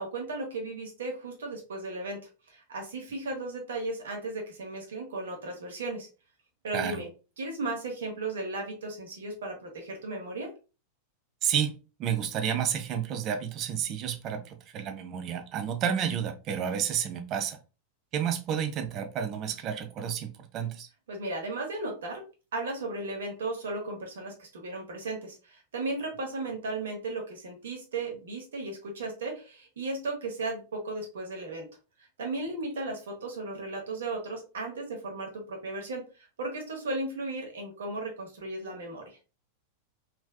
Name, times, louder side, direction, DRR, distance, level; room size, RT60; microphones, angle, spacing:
voice 1, 0.0-2.2 2.5-6.1 6.6-7.1 7.4-10.5 21.1-22.2 22.5-31.7 32.2-39.2, right 2 dB, 65° right, 1.1 m, -35 dB
voice 2, 6.7-7.0 11.4-11.7 12.0-17.6 18.1-20.9, right 8 dB, 35° right, 0.5 m, -30 dB
3.2 x 2.6 x 2.3 m
figure-of-eight pair, 90°, 0 cm